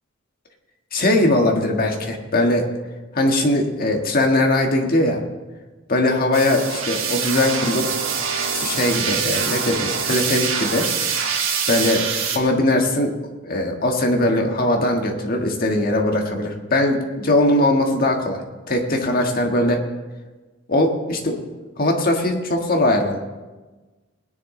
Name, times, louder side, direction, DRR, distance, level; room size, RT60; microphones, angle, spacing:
voice 1, 0.9-2.6 3.1-5.2 5.9-8.0 8.5-10.8 11.7-12.0 12.3-13.1 13.4-18.4 18.7-19.8 20.7-21.4 21.8-23.2, left 1 dB, 45° left, 2 dB, 1.6 m, -20 dB
sound 1, 6.3-12.4, right 6 dB, 85° right, 1.4 m, -24 dB
19.5 x 10.0 x 3.2 m, 1.2 s
head